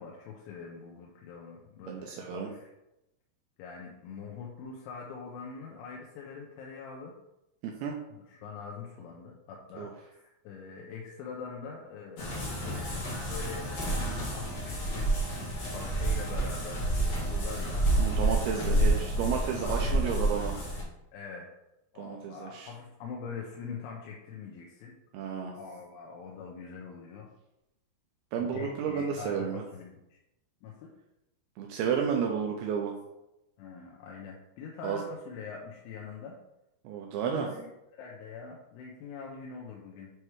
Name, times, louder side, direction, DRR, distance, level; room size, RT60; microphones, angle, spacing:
voice 1, 0.0-2.7 3.6-7.1 8.3-17.9 19.5-20.1 20.5-20.6 21.1-21.5 21.9-24.9 25.6-27.3 28.3-30.2 30.6-31.0 33.6-36.4 37.2-37.7 37.9-40.1, left 5 dB, 90° left, -2 dB, 3.3 m, -43 dB
voice 2, 1.9-2.5 7.6-7.9 9.8-9.9 18.0-20.5 22.0-22.7 25.1-25.5 28.3-29.6 31.6-32.9 34.8-35.0 36.8-37.5, right 7 dB, 90° right, 1 dB, 2.2 m, -32 dB
sound 1, 12.2-20.8, right 1 dB, 60° left, 1.9 m, -29 dB
8.4 x 3.3 x 4.6 m, 0.90 s
omnidirectional pair, 5.3 m